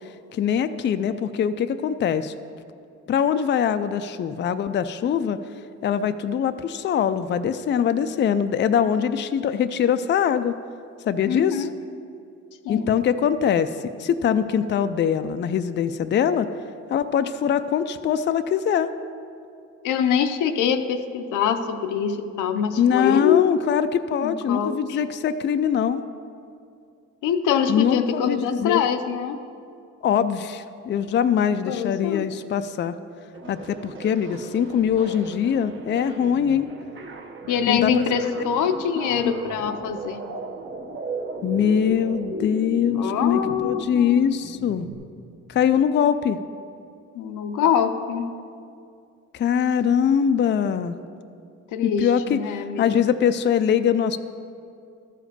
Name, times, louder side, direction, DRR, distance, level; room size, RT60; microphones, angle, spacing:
voice 1, 0.3-2.4 3.1-5.4 5.8-10.6 11.1-11.7 12.7-16.5 16.9-18.9 22.8-26.0 27.7-28.8 30.0-32.9 33.5-36.7 37.7-37.9 38.2-38.3 39.2-39.3 41.4-44.9 45.5-46.4 49.3-51.0 51.8-54.2, left 8 dB, 40° left, 10 dB, 0.4 m, -22 dB
voice 2, 11.3-11.7 12.6-13.0 19.8-23.5 24.2-25.0 27.2-29.4 31.7-32.3 37.5-40.2 43.0-44.2 47.1-48.3 51.7-52.8, left 7 dB, 85° left, 7 dB, 0.7 m, -24 dB
sound 1, 33.3-44.9, right 3 dB, 40° right, 1.2 m, -36 dB
13.0 x 5.0 x 6.7 m, 2.4 s
cardioid pair, 90°, 30 cm